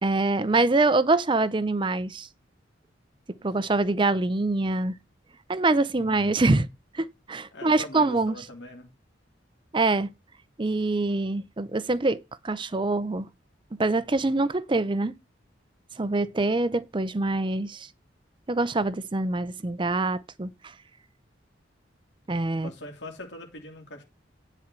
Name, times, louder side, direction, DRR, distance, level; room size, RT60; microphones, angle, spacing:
voice 1, 0.0-2.3 3.4-4.9 5.5-6.7 6.9-8.3 9.7-10.1 10.6-13.3 13.7-15.1 16.0-17.9 18.5-20.5 22.3-22.7, right 2 dB, 25° right, 0.6 m, -25 dB
voice 2, 6.0-6.4 7.5-8.9 22.5-24.0, left 1 dB, 70° left, 2.6 m, -42 dB
10.0 x 4.4 x 6.0 m
head